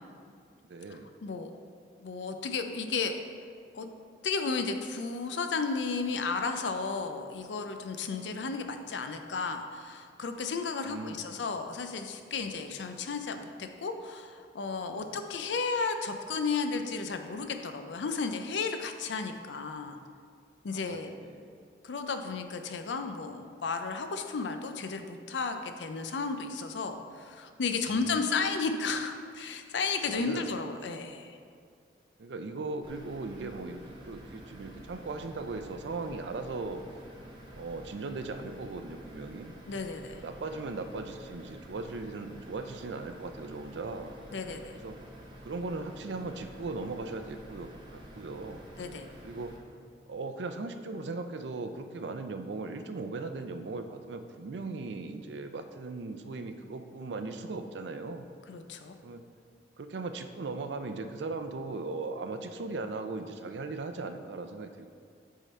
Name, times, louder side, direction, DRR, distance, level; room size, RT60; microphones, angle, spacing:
voice 1, 0.7-1.1 8.2-8.5 10.8-11.3 14.9-15.3 20.7-21.6 27.8-28.2 30.1-30.7 32.2-36.8 37.5-39.5 40.1-44.2 44.7-45.0 45.4-48.6 49.2-49.5 50.1-58.3 59.0-59.2 59.8-64.9, right 3 dB, 80° right, 8 dB, 0.5 m, -38 dB
voice 2, 2.0-3.1 3.7-3.9 4.2-20.0 20.6-21.1 21.8-31.4 39.7-40.2 44.3-44.8 48.8-49.0 58.5-58.9, left 4 dB, 90° left, 7 dB, 0.5 m, -33 dB
sound 1, 32.8-49.6, equal, 25° right, 0.9 m, -50 dB
8.1 x 3.8 x 4.3 m, 2.2 s
head